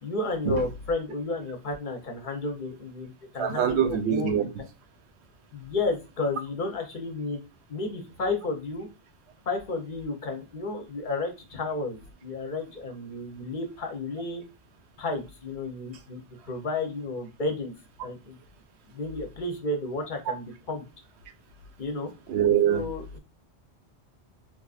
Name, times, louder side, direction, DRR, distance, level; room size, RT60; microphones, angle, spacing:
voice 1, 0.0-4.5 5.5-7.4 7.7-8.9 9.5-14.4 15.0-16.2 16.5-17.7 18.0-18.4 18.9-20.8 21.8-22.1 22.6-23.2, left 3 dB, 50° left, 0.7 m, -32 dB
voice 2, 3.4-4.5 20.3-20.4 22.3-22.9, right 9 dB, 75° right, 0.8 m, -24 dB
4.2 x 2.4 x 2.4 m
omnidirectional pair, 1.2 m